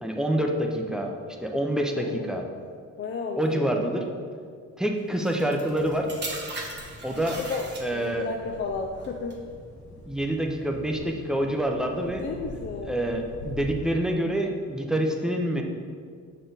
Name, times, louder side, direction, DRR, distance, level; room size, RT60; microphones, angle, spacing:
voice 1, 0.0-1.1 1.4-2.4 3.4-4.0 4.8-6.1 7.0-7.4 7.8-8.3 10.1-12.2 12.8-15.6, right 1 dB, ahead, 2 dB, 0.6 m, -27 dB
voice 2, 1.9-2.3 3.0-3.8 7.4-9.4 12.0-13.0, left 4 dB, 40° left, 1 dB, 0.5 m, -33 dB
sound 1, 5.2-8.3 9.0-9.3, right 3 dB, 35° right, 1.1 m, -38 dB
sound 2, 5.6-13.8, left 1 dB, 65° left, 1.4 m, -44 dB
6.3 x 4.1 x 4.0 m, 2.1 s
cardioid pair, 90°, 30 cm